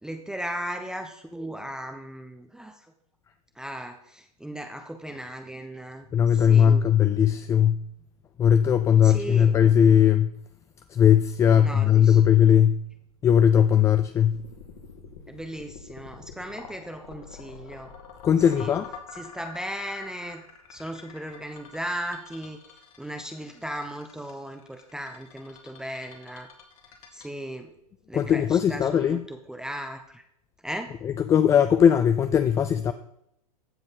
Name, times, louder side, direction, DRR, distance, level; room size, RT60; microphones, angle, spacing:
voice 1, 0.0-2.9 3.6-6.8 9.0-9.6 11.5-12.2 15.3-17.9 18.5-18.7 19.1-20.4 20.7-22.6 23.0-26.5 27.1-27.7 28.1-30.2 30.6-30.9, equal, 5° right, 5 dB, 0.7 m, -37 dB
voice 2, 6.1-7.8 8.4-10.3 10.9-12.8 13.2-14.4 18.2-18.9 28.1-29.2 31.0-32.9, left 8 dB, 15° left, 10 dB, 0.3 m, -19 dB
sound 1, 14.3-28.4, left 6 dB, 60° left, 2.3 m, -46 dB
15.0 x 5.2 x 4.1 m, 0.76 s
hypercardioid pair, 110°, 20 cm